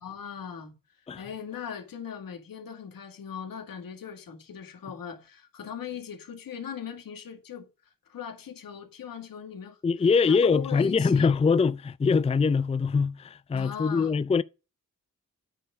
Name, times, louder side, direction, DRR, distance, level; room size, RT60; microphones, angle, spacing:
voice 1, 0.0-0.7 1.2-7.7 8.1-9.8 10.3-11.3 13.5-14.2, left 8 dB, 85° left, 1.9 m, -39 dB
voice 2, 9.8-14.4, left 5 dB, 20° left, 0.4 m, -23 dB
8.9 x 4.4 x 5.0 m
cardioid pair, 45°, 33 cm